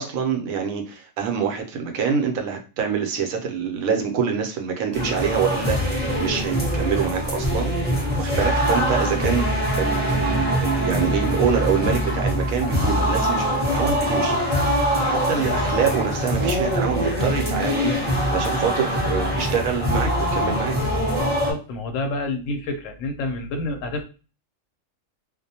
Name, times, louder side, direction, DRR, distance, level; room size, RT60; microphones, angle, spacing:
voice 1, 0.0-7.7 8.2-13.4 13.7-14.4 15.0-20.8, right 6 dB, 80° right, 3 dB, 1.0 m, -25 dB
sound 1, 4.9-21.5, equal, 10° right, 0.6 m, -23 dB
voice 2, 21.3-24.0, left 2 dB, 75° left, 5 dB, 0.9 m, -28 dB
2.5 x 2.1 x 2.7 m, 0.34 s
omnidirectional pair, 1.4 m